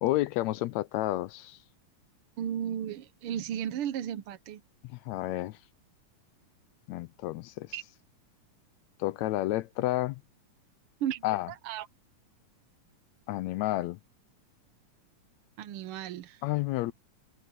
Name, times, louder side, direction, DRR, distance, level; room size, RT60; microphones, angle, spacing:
voice 1, 0.0-1.6 4.8-5.6 6.9-7.7 9.0-10.2 11.2-11.5 13.3-14.0 16.4-16.9, left 16 dB, 75° left, 1.8 m, -30 dB
voice 2, 2.4-4.6 7.7-7.8 11.0-11.9 15.6-16.4, right 10 dB, 75° right, 1.2 m, -35 dB
omnidirectional pair, 3.5 m